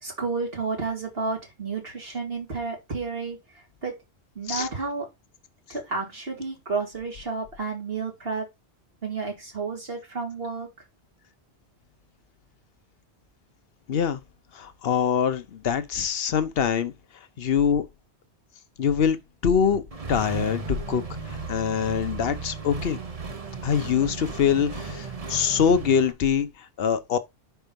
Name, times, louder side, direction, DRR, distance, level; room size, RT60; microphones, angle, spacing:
voice 1, 0.0-4.0 4.4-5.1 5.7-8.5 9.0-10.7, right 4 dB, 60° right, 2.4 m, -31 dB
voice 2, 13.9-14.2 14.6-16.9 17.4-17.8 18.8-19.2 19.4-19.8 20.1-20.6 20.9-21.0 21.5-23.0 23.6-26.5 26.8-27.2, left 7 dB, 65° left, 0.9 m, -23 dB
Accelerating revving vroom, 19.9-26.1, right 4 dB, 35° right, 0.9 m, -35 dB
5.4 x 4.6 x 5.2 m
omnidirectional pair, 1.1 m